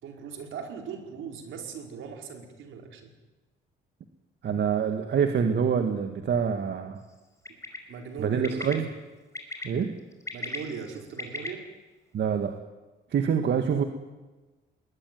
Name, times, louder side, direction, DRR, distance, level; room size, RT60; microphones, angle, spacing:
voice 1, 0.0-3.1 7.9-8.8 10.3-11.7, right 6 dB, 80° right, 3 dB, 4.9 m, -39 dB
voice 2, 4.4-7.0 8.2-8.9 9.6-10.0 12.1-12.5 13.1-13.8, right 7 dB, 60° right, 6 dB, 2.0 m, -26 dB
Bird, 7.4-7.8 8.4-8.7 9.3-9.6 10.1-11.5, left 2 dB, 15° left, 5.2 m, -35 dB
20.5 x 20.0 x 9.5 m, 1.2 s
cardioid pair, 90°, 20 cm